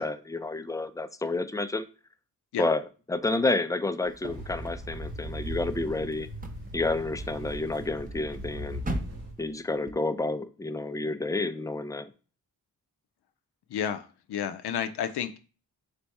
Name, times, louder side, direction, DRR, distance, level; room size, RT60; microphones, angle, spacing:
voice 1, 0.0-1.8 2.6-2.8 3.1-6.3 6.7-8.8 9.4-12.1, left 2 dB, 10° left, 11 dB, 0.4 m, -29 dB
sound 1, 4.0-9.9, right 1 dB, 20° right, 0.7 m, -41 dB
sound 2, 4.3-9.3, right 1 dB, 75° right, 2.0 m, -39 dB
voice 2, 13.7-15.4, left 9 dB, 80° left, 9 dB, 0.5 m, -31 dB
3.4 x 3.4 x 4.1 m, 0.35 s
cardioid pair, 55°, 39 cm